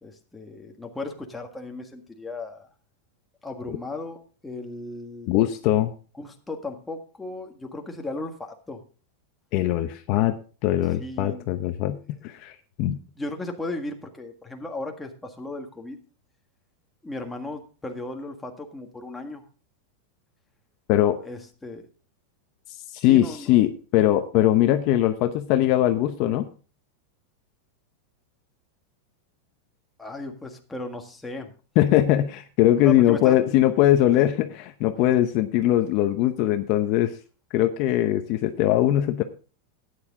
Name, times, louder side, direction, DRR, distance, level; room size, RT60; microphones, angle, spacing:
voice 1, 0.0-2.7 3.4-4.2 4.4-5.3 6.2-8.8 11.0-11.5 12.9-16.0 17.0-19.4 21.2-21.9 23.1-23.5 30.0-31.5 32.8-33.4, left 2 dB, 5° left, 2 dB, 1.6 m, -36 dB
voice 2, 5.3-5.9 9.5-13.0 20.9-21.2 22.9-26.5 31.8-37.2 37.5-39.2, left 13 dB, 45° left, 8 dB, 0.8 m, -21 dB
13.0 x 9.6 x 3.7 m, 0.37 s
supercardioid pair, 155°, 0 cm